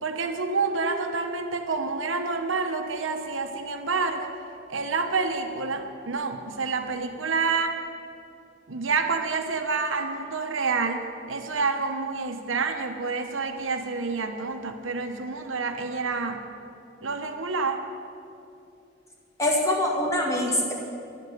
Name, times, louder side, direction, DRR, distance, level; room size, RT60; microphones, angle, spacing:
voice 1, 0.0-4.3 4.7-7.8 8.7-16.4 17.0-17.8, right 4 dB, 85° right, 5 dB, 1.1 m, -28 dB
voice 2, 19.4-20.7, left 1 dB, 15° left, -2 dB, 2.1 m, -24 dB
11.0 x 8.3 x 9.4 m, 2.6 s
head